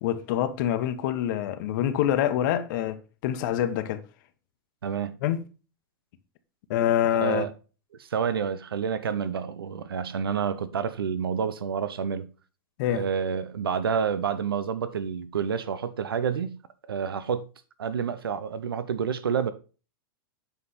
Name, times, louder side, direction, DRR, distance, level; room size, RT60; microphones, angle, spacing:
voice 1, 0.0-4.0 5.2-5.4 6.7-7.4 12.8-13.0, left 11 dB, 60° left, 1.0 m, -26 dB
voice 2, 4.8-5.2 7.2-7.5 8.0-12.3 12.9-16.5 16.9-17.5 17.8-19.5, right 7 dB, 85° right, 0.6 m, -29 dB
8.0 x 4.7 x 4.0 m
hypercardioid pair, 110°, 12 cm